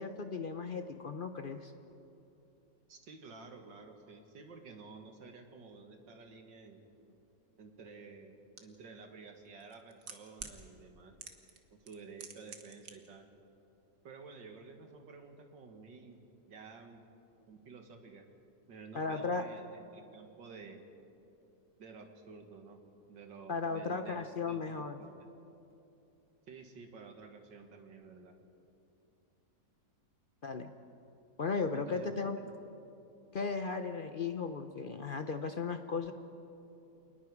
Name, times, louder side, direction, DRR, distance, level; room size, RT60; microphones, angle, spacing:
voice 1, 0.0-1.7 18.9-19.4 23.5-25.0 30.4-30.7 31.4-32.4 33.3-36.1, left 4 dB, 55° left, 8 dB, 0.5 m, -36 dB
voice 2, 2.9-6.8 7.6-11.2 11.7-13.3 14.0-17.0 17.4-18.2 18.7-20.8 21.8-22.8 23.1-25.3 26.5-28.3 31.7-32.1, right 4 dB, 80° right, 4 dB, 2.4 m, -52 dB
sound 1, 8.6-8.7 9.6-10.6 11.2-11.6 11.9-12.9 13.2-13.3, right 6 dB, 60° right, 1.8 m, -46 dB
27.5 x 20.0 x 4.8 m, 2.8 s
omnidirectional pair, 1.9 m